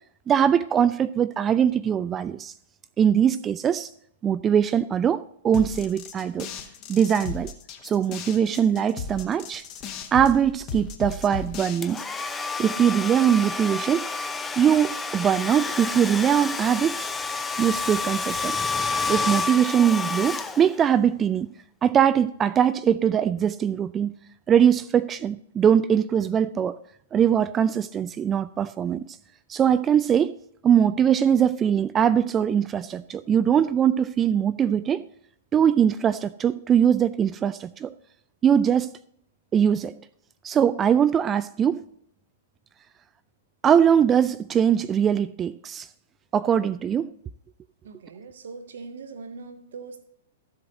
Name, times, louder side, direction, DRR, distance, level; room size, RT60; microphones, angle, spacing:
voice 1, 0.3-2.5 3.0-3.9 4.2-6.5 6.9-7.5 7.8-9.6 10.1-12.1 12.6-14.1 14.6-17.1 17.6-18.6 19.1-21.5 21.8-24.1 24.5-26.8 27.1-29.1 29.5-30.3 30.6-35.0 35.5-37.9 38.4-38.9 39.5-39.9 40.4-41.8 43.6-45.9 46.3-47.1, right 8 dB, 20° right, 0.4 m, -21 dB
sound 1, 5.5-12.3, left 5 dB, 35° left, 1.4 m, -36 dB
Domestic sounds home sounds, 11.8-21.0, left 4 dB, 10° left, 0.7 m, -29 dB
voice 2, 47.8-50.0, right 4 dB, 60° right, 1.0 m, -41 dB
13.5 x 7.6 x 4.0 m
figure-of-eight pair, 105°, 0 cm